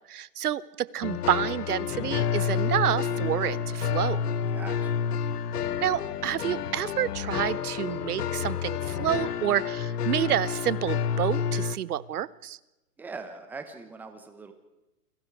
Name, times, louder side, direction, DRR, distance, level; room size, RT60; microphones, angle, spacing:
voice 1, 0.1-4.2 5.8-12.6, right 11 dB, 75° right, 20 dB, 1.1 m, -29 dB
sound 1, 1.0-11.8, left 7 dB, 85° left, 1.5 m, -29 dB
voice 2, 4.5-5.2 13.0-14.5, right 4 dB, 5° right, 7 dB, 1.0 m, -42 dB
29.5 x 21.0 x 4.9 m, 0.95 s
hypercardioid pair, 165°, 46 cm